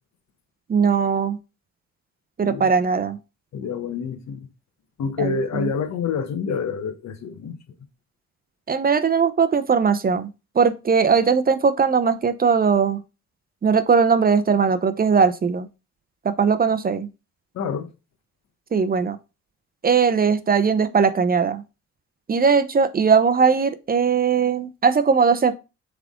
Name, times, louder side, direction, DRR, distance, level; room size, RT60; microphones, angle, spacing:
voice 1, 0.7-1.4 2.4-3.2 5.2-5.7 8.7-10.3 10.5-13.0 13.6-15.7 16.2-17.1 18.7-19.2 19.8-21.6 22.3-25.5, right 5 dB, 30° right, 0.7 m, -19 dB
voice 2, 2.4-2.7 3.5-4.5 5.0-7.5 17.5-17.9, left 5 dB, 60° left, 1.2 m, -27 dB
7.2 x 3.6 x 3.7 m
cardioid pair, 90°, 30 cm